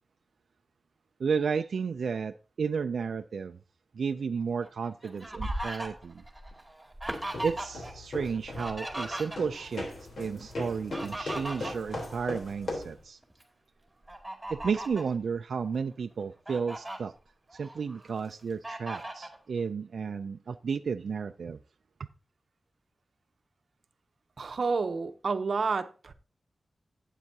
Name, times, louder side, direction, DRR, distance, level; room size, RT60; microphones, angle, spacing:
voice 1, 1.2-3.6 3.9-6.2 7.4-9.9 10.2-13.2 14.5-17.1 17.5-21.6, right 5 dB, 85° right, 0.3 m, -32 dB
Fowl, 4.6-7.9 8.2-9.8 10.7-12.8 13.2-13.4 14.1-15.1 15.7-15.8 16.2-17.0 17.5-18.2 18.6-19.4, right 1 dB, 10° right, 2.1 m, -38 dB
sound 1, 7.1-13.0, left 2 dB, 70° left, 3.4 m, -39 dB
voice 2, 24.4-26.1, right 4 dB, 60° right, 0.7 m, -30 dB
12.0 x 8.9 x 2.8 m
wide cardioid pair, 140°, 0 cm